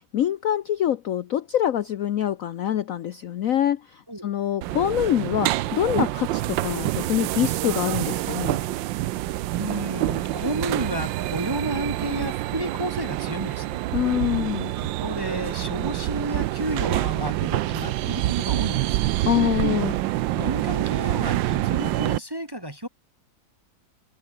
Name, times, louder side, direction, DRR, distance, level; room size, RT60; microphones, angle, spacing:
voice 1, 0.1-3.8 4.2-8.6 13.9-14.7 19.3-19.9, left 11 dB, 65° left, 0.9 m, -25 dB
sound 1, 4.6-22.2, right 15 dB, 80° right, 1.3 m, -26 dB
voice 2, 9.6-13.8 14.7-19.1 20.3-22.9, right 1 dB, 15° right, 1.1 m, -32 dB
omnidirectional pair, 2.1 m